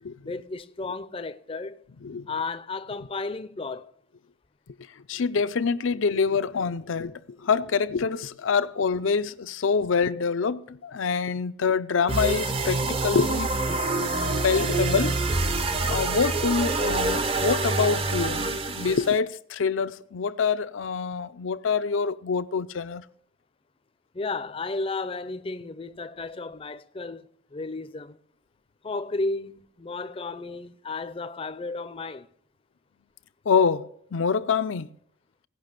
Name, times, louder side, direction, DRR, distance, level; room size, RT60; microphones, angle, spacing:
voice 1, 0.2-1.8 2.3-3.9 24.1-28.2 28.8-32.3, left 3 dB, 30° left, 0.5 m, -33 dB
voice 2, 5.1-13.5 14.0-15.1 15.9-23.0 33.5-34.9, left 5 dB, 80° left, 0.5 m, -26 dB
sound 1, 12.1-19.2, right 2 dB, 30° right, 0.5 m, -26 dB
17.0 x 5.8 x 6.5 m
head